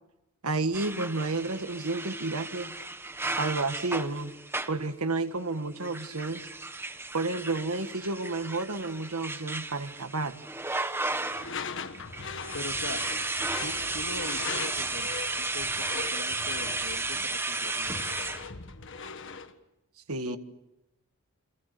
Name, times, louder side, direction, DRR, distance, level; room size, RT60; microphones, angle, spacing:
voice 1, 0.4-2.7 3.4-4.3 4.7-6.5 7.1-10.4 20.1-20.4, right 3 dB, 85° right, 9 dB, 1.7 m, -31 dB
sound 1, 0.7-4.9 5.8-11.6 11.9-18.5, right 2 dB, 10° right, 1.2 m, -34 dB
voice 2, 11.1-12.1 12.5-13.0 13.6-15.1 15.4-18.0 20.2-20.4, left 2 dB, 85° left, 6 dB, 2.2 m, -42 dB
Door / Screech, 11.3-19.6, left 5 dB, 60° left, 1.6 m, -40 dB
29.0 x 26.5 x 6.9 m, 0.94 s
head